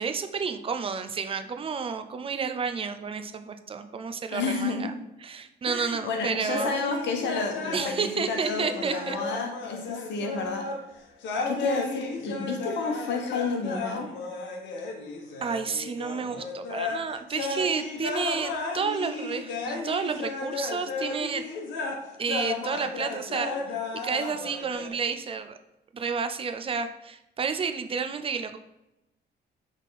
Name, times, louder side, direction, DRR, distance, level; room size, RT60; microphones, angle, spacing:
voice 1, 0.0-4.9 5.2-6.7 7.7-9.2 15.4-21.4 22.2-23.6 23.9-25.6 25.9-28.6, right 5 dB, 30° right, 9 dB, 0.5 m, -31 dB
voice 2, 4.3-4.8 5.7-10.6 11.5-14.1, left 4 dB, 75° left, 2 dB, 1.3 m, -31 dB
Carnatic varnam by Vignesh in Abhogi raaga, 6.5-10.8 11.2-17.0 17.3-24.9, left 3 dB, 90° left, 1.1 m, -34 dB
6.3 x 3.6 x 4.1 m, 0.92 s
cardioid pair, 120°, 19 cm